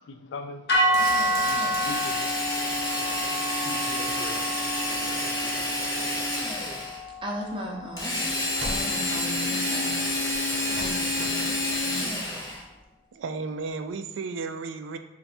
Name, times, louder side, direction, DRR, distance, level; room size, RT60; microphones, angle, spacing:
voice 1, 0.0-5.6, left 3 dB, 75° left, 6 dB, 0.4 m, -44 dB
sound 1, 0.7-9.0, equal, 55° left, 0.9 m, -29 dB
Drill, 0.9-7.0 8.0-12.6, left 1 dB, 20° left, 0.8 m, -29 dB
voice 2, 7.2-8.3 8.6-9.9 10.7-12.2, right 1 dB, 25° right, 0 dB, 0.5 m, -37 dB
sound 2, 7.4-7.6 8.0-9.0 10.3-11.4 11.7-11.8, right 1 dB, 60° right, 0.8 m, -39 dB
voice 3, 13.1-15.0, right 4 dB, 85° right, 8 dB, 0.3 m, -33 dB
3.3 x 2.3 x 4.2 m, 0.93 s
head